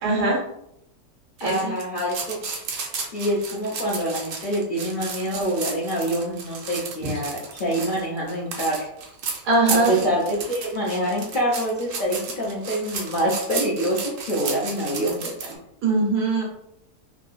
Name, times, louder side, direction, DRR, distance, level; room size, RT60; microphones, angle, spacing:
voice 1, 0.0-0.4 1.4-1.7 9.4-10.0 15.8-16.4, right 2 dB, 85° right, -3 dB, 1.7 m, -21 dB
voice 2, 1.4-2.4 3.1-8.9 9.7-15.5, equal, 50° left, -7 dB, 0.6 m, -26 dB
sound 1, 1.4-15.5, right 5 dB, 65° right, 0.9 m, -33 dB
3.6 x 2.3 x 2.4 m, 0.77 s
omnidirectional pair, 1.6 m